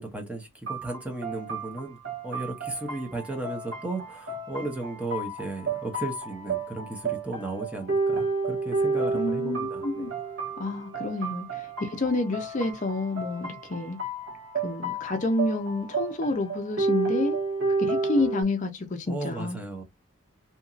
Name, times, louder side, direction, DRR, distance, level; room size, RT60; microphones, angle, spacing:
voice 1, 0.0-2.0 2.2-10.1 19.1-19.8, right 2 dB, 5° right, 0.7 m, -35 dB
sound 1, 0.7-18.4, right 3 dB, 65° right, 1.2 m, -31 dB
voice 2, 9.1-10.1 10.6-14.0 14.6-17.4 17.8-19.6, left 2 dB, 35° left, 0.5 m, -29 dB
2.8 x 2.6 x 2.4 m
head